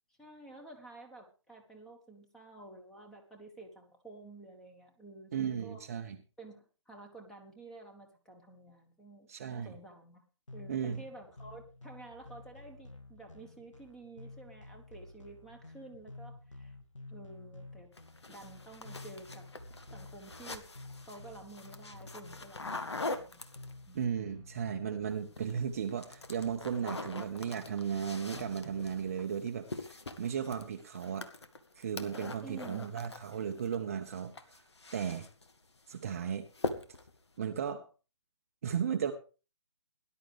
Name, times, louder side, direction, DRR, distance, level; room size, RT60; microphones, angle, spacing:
voice 1, 0.2-5.8 6.4-10.2 10.5-16.8 17.1-17.9 18.3-19.5 19.9-20.7 21.0-23.5 23.9-24.0 32.4-32.9, right 2 dB, 5° left, 3 dB, 1.4 m, -51 dB
voice 2, 5.3-6.2 9.3-9.7 10.7-11.0 23.9-29.9 30.2-31.3 31.8-34.3 34.9-35.3 35.9-36.5 37.4-37.8 38.6-39.1, right 8 dB, 30° right, 6 dB, 0.9 m, -35 dB
sound 1, 10.5-29.3, left 2 dB, 80° left, 2.0 m, -51 dB
sound 2, 17.9-24.0 25.1-25.6 25.9-33.8 34.1-35.5 35.9-36.2 36.5-37.2, left 2 dB, 60° left, 1.6 m, -43 dB
18.5 x 11.0 x 3.5 m, 0.35 s
figure-of-eight pair, 140°, 16 cm